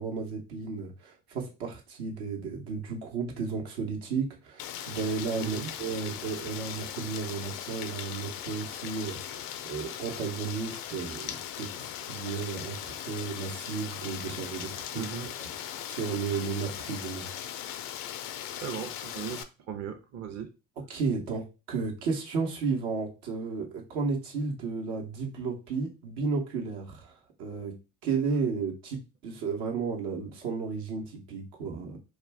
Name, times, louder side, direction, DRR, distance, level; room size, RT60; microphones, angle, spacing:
voice 1, 0.0-15.1 15.4-17.3 20.9-27.1 27.4-27.7 28.0-32.0, right 5 dB, 80° right, 0.9 m, -33 dB
Rain, 4.6-19.4, left 10 dB, 60° left, 0.5 m, -39 dB
voice 2, 5.4-5.7 14.9-15.3 18.5-20.5, right 8 dB, 45° right, 0.6 m, -37 dB
2.3 x 2.2 x 3.3 m
hypercardioid pair, 60°, 38 cm